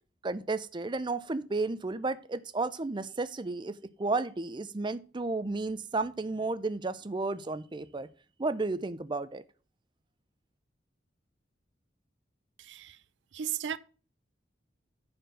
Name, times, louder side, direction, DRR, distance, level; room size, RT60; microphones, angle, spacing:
voice 1, 0.2-8.1 8.4-9.4, right 3 dB, 25° right, 0.5 m, -33 dB
voice 2, 12.6-13.0 13.3-13.8, right 9 dB, 75° right, 0.5 m, -35 dB
10.0 x 4.4 x 6.6 m
head